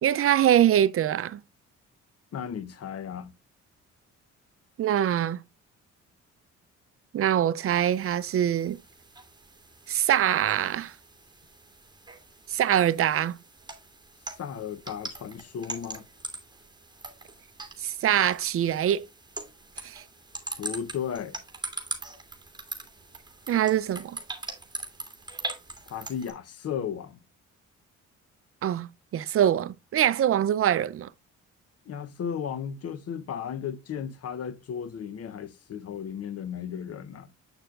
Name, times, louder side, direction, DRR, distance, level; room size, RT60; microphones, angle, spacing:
voice 1, 0.0-1.4 4.8-5.4 7.1-8.8 9.9-10.9 12.5-13.3 17.8-19.1 19.8-20.0 23.5-24.2 28.6-31.1, right 10 dB, 50° right, 0.5 m, -24 dB
voice 2, 2.3-3.3 14.4-16.1 20.6-21.4 25.9-27.2 31.9-37.3, left 8 dB, 55° left, 0.8 m, -35 dB
sound 1, 7.7-26.3, right 2 dB, 15° right, 2.6 m, -42 dB
7.9 x 6.6 x 2.4 m
cardioid pair, 90°, 30 cm